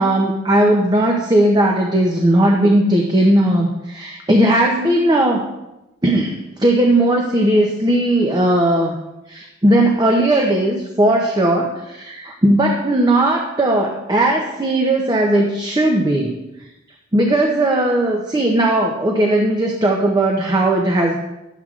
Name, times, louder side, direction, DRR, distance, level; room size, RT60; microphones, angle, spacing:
voice 1, 0.0-5.4 6.0-9.0 9.3-16.3 17.1-21.1, right 1 dB, 20° right, 1 dB, 0.6 m, -17 dB
11.5 x 7.3 x 2.4 m, 0.96 s
head